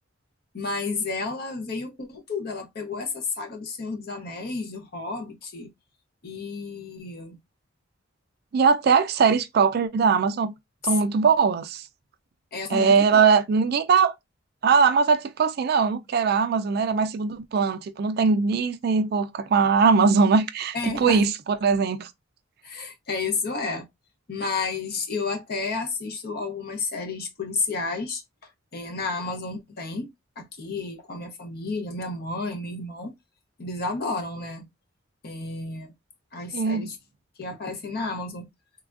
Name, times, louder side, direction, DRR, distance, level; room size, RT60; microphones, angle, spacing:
voice 1, 0.5-5.7 6.2-7.4 12.5-13.2 20.7-21.2 22.6-23.9 24.3-28.2 28.7-30.1 30.4-33.1 33.6-34.7 35.2-35.9 36.3-37.0 37.4-38.5, left 3 dB, 50° left, 0.7 m, -31 dB
voice 2, 8.5-10.5 10.8-11.8 12.7-14.1 14.6-22.1 36.5-36.9, right 5 dB, 50° right, 0.3 m, -21 dB
3.3 x 2.3 x 2.4 m
head